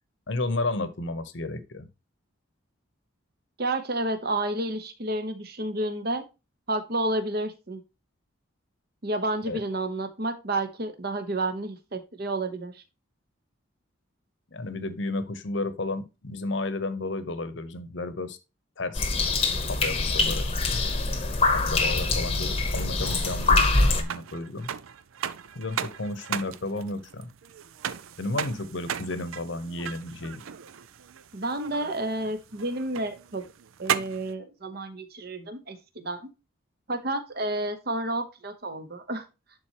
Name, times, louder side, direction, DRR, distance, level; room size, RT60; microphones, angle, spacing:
voice 1, 0.3-1.9 9.5-9.6 14.5-18.4 18.8-19.1 19.7-20.4 21.7-24.7 25.6-27.3 28.2-30.4, left 2 dB, 60° left, 12 dB, 0.9 m, -32 dB
voice 2, 3.6-6.2 6.7-7.8 9.0-12.8 31.3-33.4 33.8-36.3 36.9-39.2, right 1 dB, 45° right, 8 dB, 1.0 m, -30 dB
sound 1, 18.9-24.0, left 3 dB, 30° left, 0.9 m, -24 dB
sound 2, 22.7-34.3, right 8 dB, 80° right, 0.5 m, -37 dB
11.0 x 4.1 x 2.9 m, 0.27 s
head